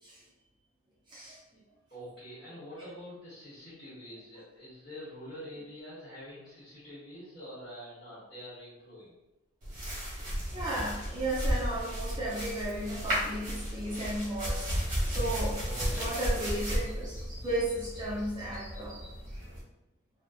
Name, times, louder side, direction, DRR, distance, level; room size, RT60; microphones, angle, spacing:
voice 1, 1.1-1.4 10.5-15.6 16.0-19.0, right 1 dB, 20° right, -6 dB, 0.5 m, -35 dB
voice 2, 1.9-9.2 15.6-16.7, equal, 40° left, -10 dB, 1.1 m, -46 dB
sound 1, 9.6-19.6, equal, 40° right, 1.0 m, -34 dB
2.8 x 2.0 x 2.4 m, 1.0 s
head